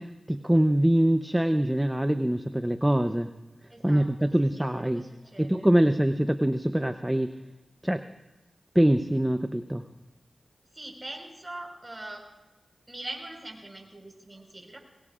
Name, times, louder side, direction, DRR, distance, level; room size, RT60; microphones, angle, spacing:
voice 1, 0.0-3.3 3.8-5.0 5.4-7.3 7.8-8.0 8.7-9.8, right 1 dB, 10° right, 9 dB, 0.7 m, -24 dB
voice 2, 3.7-5.7 10.7-12.3 12.9-14.8, right 1 dB, 25° right, 1 dB, 4.7 m, -42 dB
22.5 x 19.0 x 2.5 m, 1.0 s
cardioid pair, 40°, 0 cm